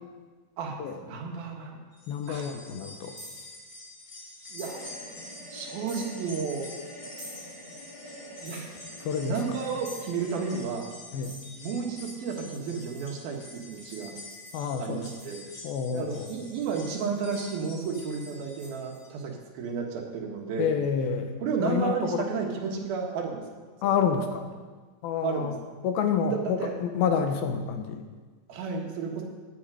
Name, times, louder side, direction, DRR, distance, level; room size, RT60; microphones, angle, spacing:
voice 1, 0.6-1.8 2.3-2.5 4.5-4.8 5.5-6.7 8.4-8.7 9.2-10.9 11.6-14.2 14.8-15.4 15.9-20.7 21.4-23.4 23.8-24.0 25.2-25.5 26.3-26.8 28.5-29.2, right 5 dB, 85° right, 1 dB, 3.5 m, -32 dB
sound 1, 1.9-19.2 19.6-19.7 20.8-20.9, left 1 dB, 35° left, 2.8 m, -47 dB
voice 2, 2.1-3.1 9.0-9.4 11.1-11.4 14.5-15.0 15.6-16.3 20.6-22.3 23.8-24.5 25.0-25.6 25.8-28.0, left 6 dB, 85° left, 6 dB, 3.0 m, -28 dB
sound 2, 3.2-3.5 4.6-4.8 5.9-6.1 7.2-7.4 8.5-8.7 9.9-10.1 11.2-11.5 12.5-15.4 15.9-19.0, equal, 15° right, 5.6 m, -48 dB
sound 3, 4.6-10.6, left 1 dB, 10° left, 2.0 m, -46 dB
17.5 x 8.9 x 5.0 m, 1.4 s
omnidirectional pair, 4.1 m